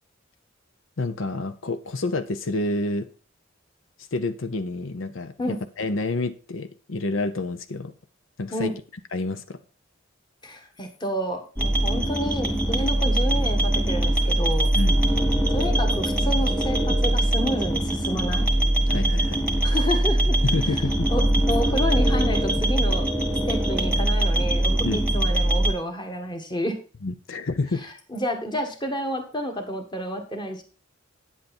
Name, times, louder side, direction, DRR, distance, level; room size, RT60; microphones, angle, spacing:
voice 1, 1.0-3.1 4.1-7.9 8.4-8.7 9.1-9.6 14.7-14.9 18.9-19.4 20.4-21.1 24.8-25.0 27.0-27.9, left 2 dB, 85° left, 10 dB, 0.8 m, -28 dB
voice 2, 10.4-14.7 15.5-18.5 19.6-20.4 21.1-23.1 23.5-26.8 27.8-30.6, equal, 25° left, 4 dB, 1.6 m, -30 dB
sound 1, 11.6-25.7, right 1 dB, 5° left, 1.7 m, -22 dB
9.3 x 8.1 x 4.3 m, 0.36 s
head